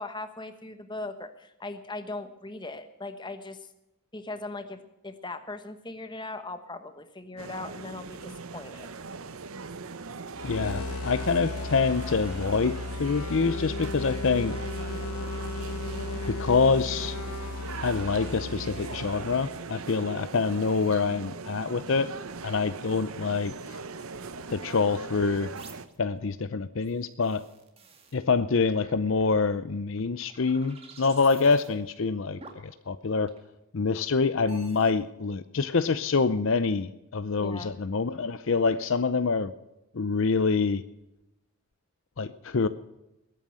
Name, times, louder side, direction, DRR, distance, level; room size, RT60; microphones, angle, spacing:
voice 1, 0.0-3.7 4.1-8.9 37.4-37.8, left 2 dB, 20° left, 9 dB, 1.2 m, -39 dB
sound 1, 7.4-25.9, right 4 dB, 75° right, 0.9 m, -40 dB
sound 2, 10.3-19.9, left 2 dB, 85° left, 0.9 m, -35 dB
voice 2, 10.4-14.5 16.3-17.2 17.8-22.1 22.4-23.5 24.5-25.5 26.0-27.4 28.1-33.3 33.7-39.5 39.9-40.8 42.2-42.7, left 4 dB, 60° left, 13 dB, 0.6 m, -26 dB
sound 3, 24.1-24.5 25.6-26.0 26.8-28.2 28.8-29.5 30.1-31.7 32.4-32.8 33.3-33.6 34.5-34.9, right 4 dB, 25° right, 2.1 m, -50 dB
20.5 x 9.1 x 6.4 m, 0.93 s
head